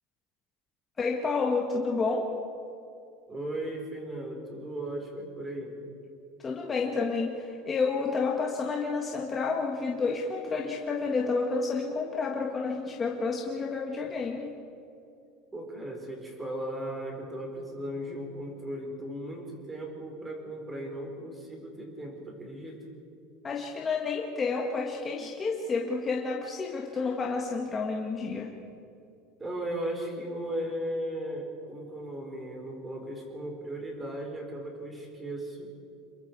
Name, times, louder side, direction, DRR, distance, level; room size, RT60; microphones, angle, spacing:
voice 1, 1.0-2.3 6.4-14.5 23.4-28.5, left 4 dB, 20° left, 0 dB, 1.6 m, -30 dB
voice 2, 3.3-5.8 15.5-22.8 29.4-35.7, right 1 dB, 10° right, 1 dB, 4.6 m, -36 dB
27.5 x 22.5 x 4.8 m, 2.7 s
cardioid pair, 155°, 0 cm